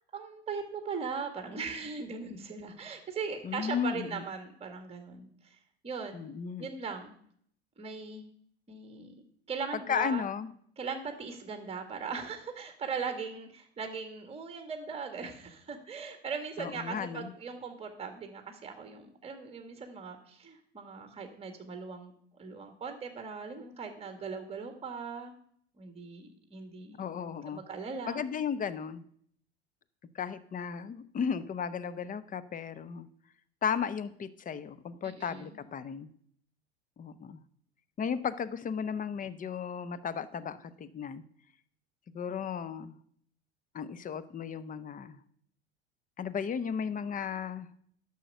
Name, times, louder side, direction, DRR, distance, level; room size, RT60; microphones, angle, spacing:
voice 1, 0.1-5.6 5.8-6.2 6.6-7.1 7.8-8.2 8.7-9.1 9.5-10.3 10.8-22.1 22.4-25.3 25.8-27.0 27.5-28.2 35.0-35.6, right 5 dB, 20° right, 6 dB, 1.9 m, -39 dB
voice 2, 3.4-4.2 6.1-6.7 9.9-10.5 16.6-17.3 27.0-27.6 28.1-29.0 30.1-33.1 33.6-36.1 37.0-37.4 38.0-41.2 42.1-43.0 43.7-45.2 46.2-47.7, left 7 dB, 25° left, 15 dB, 0.8 m, -35 dB
11.0 x 6.5 x 6.8 m, 0.63 s
hypercardioid pair, 85°, 32 cm